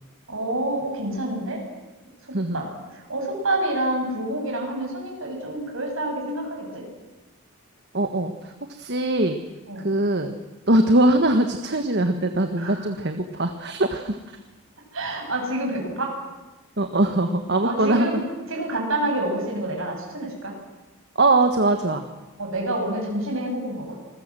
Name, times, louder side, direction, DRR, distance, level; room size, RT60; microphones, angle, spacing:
voice 1, 0.3-1.6 2.5-2.7 2.9-6.8 9.7-9.9 12.6-12.9 14.9-16.1 17.6-20.5 22.4-24.0, right 1 dB, 65° right, 1 dB, 7.7 m, -28 dB
voice 2, 7.9-9.4 9.8-10.3 10.7-14.2 16.8-18.2 21.1-22.0, right 2 dB, 50° right, 6 dB, 1.5 m, -21 dB
27.0 x 20.5 x 7.7 m, 1.1 s
head